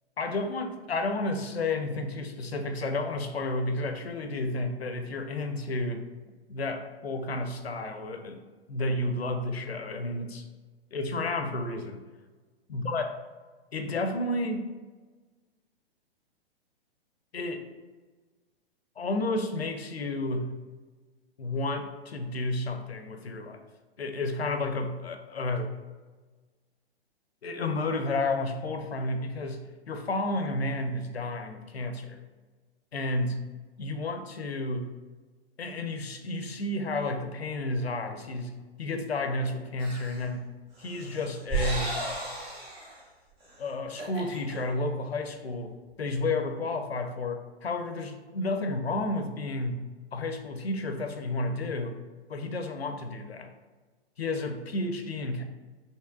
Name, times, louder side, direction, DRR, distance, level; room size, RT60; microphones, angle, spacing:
voice 1, 0.2-6.0 6.5-8.4 8.7-10.4 10.9-12.0 12.7-13.0 13.7-14.7 17.3-17.6 19.0-20.6 21.4-23.6 24.0-25.7 27.4-32.2 32.9-33.4 33.8-34.9 35.6-40.5 40.8-41.9 43.6-45.7 46.0-49.9 50.1-52.0 52.3-53.5 54.2-55.4, left 2 dB, 75° left, 6 dB, 0.6 m, -31 dB
sound 1, 39.8-40.2 40.8-43.0 43.4-43.5 43.8-44.5, right 3 dB, 15° right, 0.7 m, -34 dB
5.5 x 3.2 x 2.3 m, 1.3 s
figure-of-eight pair, 120°, 31 cm